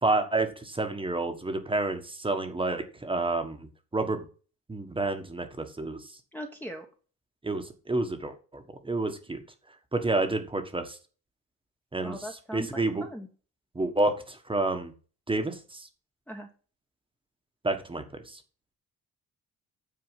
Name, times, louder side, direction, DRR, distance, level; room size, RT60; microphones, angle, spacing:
voice 1, 0.0-3.7 3.9-4.2 4.7-6.1 7.4-9.4 9.9-11.0 11.9-13.1 13.7-14.9 15.3-15.9 17.6-18.4, right 2 dB, 15° right, 6 dB, 1.4 m, -29 dB
voice 2, 6.3-6.8 12.0-13.3 16.3-16.5, equal, 5° left, 1 dB, 1.2 m, -39 dB
9.2 x 4.7 x 7.3 m, 0.36 s
cardioid pair, 165°, 35 cm